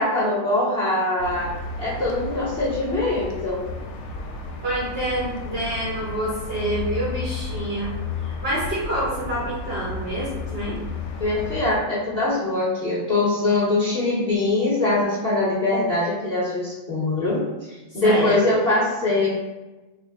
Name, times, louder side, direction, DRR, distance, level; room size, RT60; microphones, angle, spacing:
voice 1, 0.0-1.5 1.8-3.6 11.2-17.4 17.9-19.3, left 2 dB, 5° left, -8 dB, 1.2 m, -22 dB
sound 1, 1.2-11.8, left 3 dB, 90° left, 1.0 m, -33 dB
voice 2, 4.6-7.9 8.2-10.8 18.0-18.6, right 1 dB, 50° right, -7 dB, 1.1 m, -27 dB
4.5 x 2.3 x 2.4 m, 1.1 s
omnidirectional pair, 1.4 m